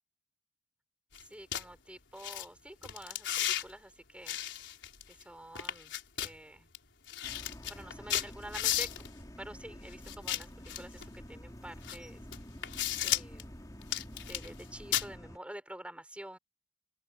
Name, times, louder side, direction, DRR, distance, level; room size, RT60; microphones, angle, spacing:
sound 1, 1.1-1.2 1.5-1.6 2.2-2.4 2.8-3.6 4.3-5.2 5.5-6.3 6.7-6.8 7.1-9.1 10.1-11.1 11.8-12.0 12.3-13.4 13.8-14.6 14.9-15.1, left 11 dB, 85° left, 4.0 m, -34 dB
voice 1, 1.3-4.4 5.1-5.9 6.2-6.7 7.7-9.1 9.4-12.2 13.0-13.6 14.3-16.4, right 1 dB, 5° right, 6.3 m, -48 dB
sound 2, 7.2-15.4, equal, 20° left, 3.8 m, -49 dB
open air
head